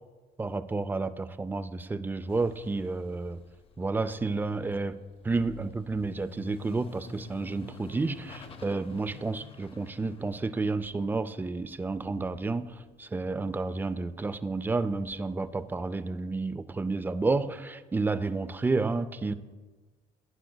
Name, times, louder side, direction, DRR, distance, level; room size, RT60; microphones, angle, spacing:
voice 1, 0.4-3.4 3.8-5.0 5.2-19.3, right 3 dB, 10° right, 13 dB, 0.3 m, -31 dB
sound 1, 2.3-13.3 13.5-15.9, left 3 dB, 35° left, 0.6 m, -50 dB
12.0 x 9.9 x 2.2 m, 1.3 s
cardioid pair, 110°, 17 cm